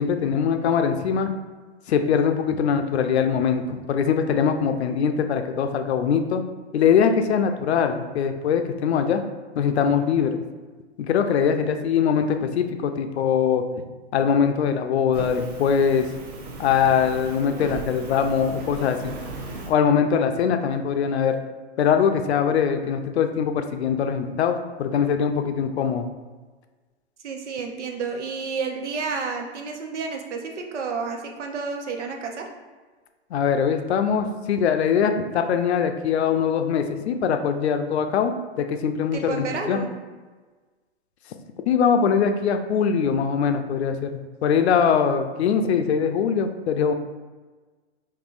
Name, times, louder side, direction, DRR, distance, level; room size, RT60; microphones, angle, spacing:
voice 1, 0.0-1.3 1.9-6.4 6.7-9.2 9.6-10.4 11.0-13.6 14.1-16.1 16.6-19.1 19.7-21.4 21.8-26.1 33.3-39.8 41.7-46.9, left 7 dB, 65° left, 7 dB, 0.5 m, -22 dB
Fire, 15.1-19.7, right 3 dB, 45° right, 0.9 m, -37 dB
voice 2, 27.2-32.5 39.1-39.9, right 5 dB, 80° right, 3 dB, 0.8 m, -30 dB
5.4 x 2.6 x 2.5 m, 1.3 s
hypercardioid pair, 140°, 35 cm